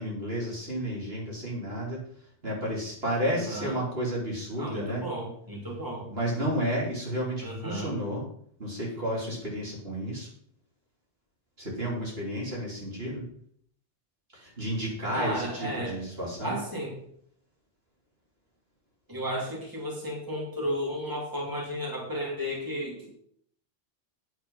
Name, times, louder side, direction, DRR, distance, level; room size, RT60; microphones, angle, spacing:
voice 1, 0.0-2.0 2.4-5.1 6.0-8.3 8.6-10.3 11.6-13.3 14.3-16.6, equal, 55° right, -4 dB, 3.7 m, -32 dB
voice 2, 3.3-3.8 4.6-6.0 7.4-7.9 15.1-16.0 16.4-16.9 19.1-23.1, equal, 15° right, -3 dB, 2.9 m, -33 dB
9.3 x 8.2 x 5.7 m, 0.65 s
omnidirectional pair, 1.2 m